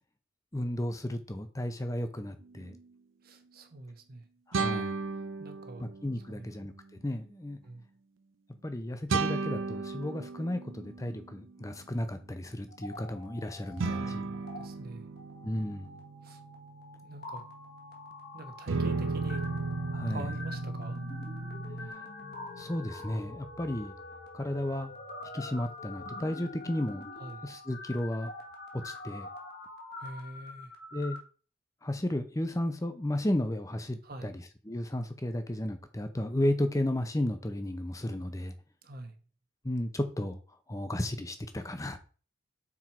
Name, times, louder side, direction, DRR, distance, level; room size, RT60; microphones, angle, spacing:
voice 1, 0.5-2.8 4.5-5.0 5.8-6.7 7.0-7.6 8.6-14.3 15.4-16.0 19.9-20.3 21.8-22.0 22.6-23.9 24.3-24.9 25.3-27.1 27.4-28.3 28.7-29.3 30.9-31.2 31.8-38.5 39.6-40.4 40.7-42.0, left 1 dB, 15° left, 0.7 m, -33 dB
sound 1, 2.6-2.7 4.5-6.2 9.1-11.5 13.8-18.1 18.7-21.9, right 3 dB, 75° right, 0.6 m, -35 dB
voice 2, 3.2-4.3 5.4-5.9 6.3-6.5 7.6-7.8 13.9-15.1 16.2-16.4 17.0-17.4 18.3-19.5 20.1-21.0 27.2-27.4 30.0-30.7 34.0-34.3 38.8-39.1, right 2 dB, 45° right, 1.1 m, -45 dB
sound 2, 12.7-14.1 14.3-14.6 15.2-31.2, left 2 dB, 55° left, 1.6 m, -45 dB
6.1 x 4.5 x 4.5 m
head